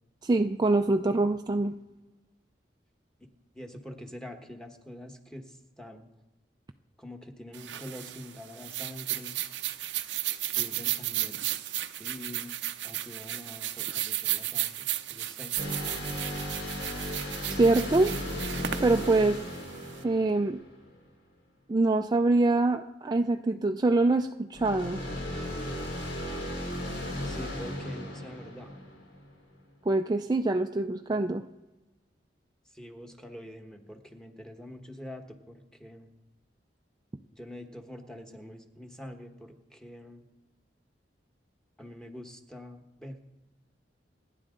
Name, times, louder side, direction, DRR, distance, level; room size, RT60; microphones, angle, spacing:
voice 1, 0.2-1.7 17.5-18.1 18.8-19.4 20.0-20.6 21.7-25.0 29.9-31.4, right 2 dB, 25° right, 5 dB, 0.4 m, -24 dB
voice 2, 3.5-6.1 7.0-9.4 10.4-11.4 12.0-12.5 12.8-16.2 19.5-19.6 27.2-28.7 32.7-36.1 37.3-40.2 41.8-43.2, left 1 dB, 5° left, 4 dB, 1.3 m, -45 dB
sound 1, 7.5-20.0, right 13 dB, 75° right, 0.6 m, -34 dB
sound 2, 15.6-21.0 24.5-29.3, left 1 dB, 80° left, 4.3 m, -36 dB
29.0 x 10.0 x 3.8 m, 1.0 s
head